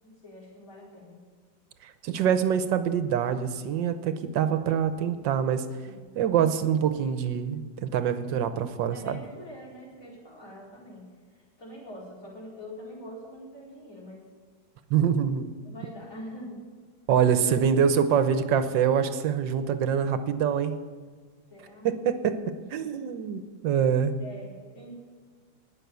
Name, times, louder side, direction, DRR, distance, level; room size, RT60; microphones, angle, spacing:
voice 1, 0.0-1.2 5.8-6.2 8.9-11.1 11.6-14.2 15.6-16.6 21.5-21.9 22.7-23.1 24.2-24.9, equal, 45° left, -5 dB, 4.7 m, -44 dB
voice 2, 1.8-5.7 6.1-9.2 14.9-15.5 17.1-20.7 21.8-22.4 22.7-24.2, right 8 dB, 75° right, 10 dB, 1.5 m, -25 dB
19.5 x 6.6 x 6.9 m, 1.5 s
omnidirectional pair, 2.0 m